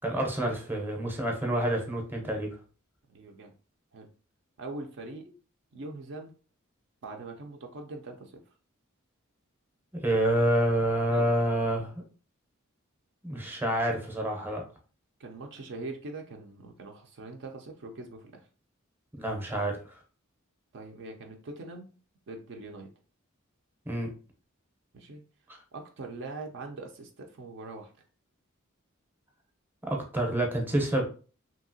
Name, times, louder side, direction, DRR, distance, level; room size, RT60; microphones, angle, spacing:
voice 1, 0.0-2.5 9.9-11.9 13.2-14.6 19.1-20.0 23.9-24.1 29.9-31.0, right 1 dB, 10° right, 2 dB, 0.6 m, -28 dB
voice 2, 3.1-3.5 3.9-4.1 4.6-5.4 5.7-6.3 7.0-8.4 10.9-11.3 15.2-18.5 20.7-21.9 22.3-22.9 24.9-25.2 25.7-27.9, right 2 dB, 60° right, 3 dB, 0.4 m, -42 dB
2.8 x 2.7 x 2.7 m, 0.37 s
head